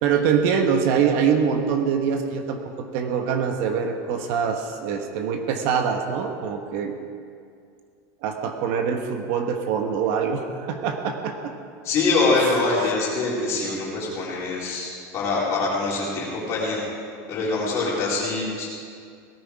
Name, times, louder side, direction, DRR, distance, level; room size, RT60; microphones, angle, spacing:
voice 1, 0.0-7.0 8.2-11.5 12.8-12.9, right 7 dB, 50° right, 5 dB, 1.2 m, -24 dB
voice 2, 11.8-16.8 17.3-18.7, left 3 dB, 30° left, -6 dB, 4.3 m, -24 dB
18.0 x 14.0 x 4.8 m, 2.3 s
supercardioid pair, 175°, 9 cm